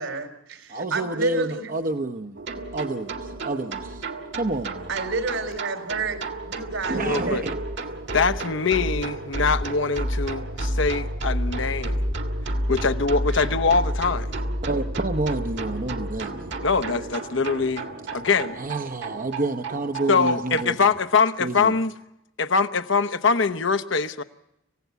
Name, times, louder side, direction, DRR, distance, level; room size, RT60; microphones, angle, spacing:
voice 1, 0.0-1.7 4.9-7.6 13.3-13.5, right 4 dB, 75° right, 3.7 m, -30 dB
voice 2, 0.7-2.4 2.7-4.0 4.3-4.9 6.9-7.5 14.6-16.5 18.6-20.9 21.4-21.8, right 2 dB, 40° right, 0.8 m, -29 dB
sound 1, 2.4-20.6, right 1 dB, 60° right, 1.8 m, -31 dB
voice 3, 6.9-7.4 8.1-11.9 12.7-14.3 16.6-17.8 18.1-18.6 20.1-21.9 22.4-24.2, left 4 dB, 65° left, 1.0 m, -23 dB
27.0 x 16.0 x 8.2 m
head